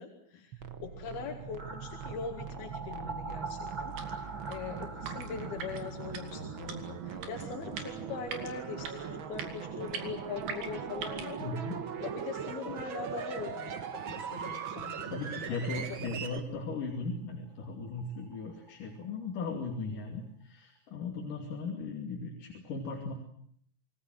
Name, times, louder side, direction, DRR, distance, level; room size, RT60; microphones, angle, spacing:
voice 1, 0.0-11.4 12.0-16.0, left 6 dB, 85° left, 3 dB, 4.1 m, -42 dB
sound 1, 0.5-16.4, right 7 dB, 55° right, 1.4 m, -40 dB
sound 2, 1.6-13.2 13.5-13.6 13.8-13.9 16.9-17.0 17.3-17.4 17.6-19.4 19.7-19.8, right 3 dB, 30° right, 0.8 m, -46 dB
sound 3, 3.8-11.4, right 6 dB, 80° right, 4.5 m, -44 dB
voice 2, 11.4-11.8 15.1-23.1, left 3 dB, 60° left, 1 dB, 4.2 m, -37 dB
27.5 x 20.5 x 7.8 m, 0.65 s
omnidirectional pair, 4.4 m